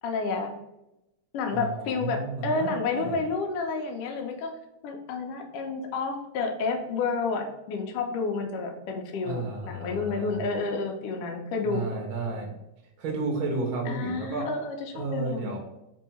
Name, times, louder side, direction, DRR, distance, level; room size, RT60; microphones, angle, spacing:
voice 1, 0.0-0.5 1.3-4.5 4.8-11.8 13.9-15.6, left 4 dB, 85° left, 2 dB, 1.3 m, -30 dB
voice 2, 1.5-3.2 9.2-10.4 11.6-12.5 13.0-14.5 14.9-15.6, right 3 dB, 60° right, 0 dB, 1.4 m, -32 dB
4.3 x 2.7 x 4.2 m, 0.89 s
omnidirectional pair, 3.3 m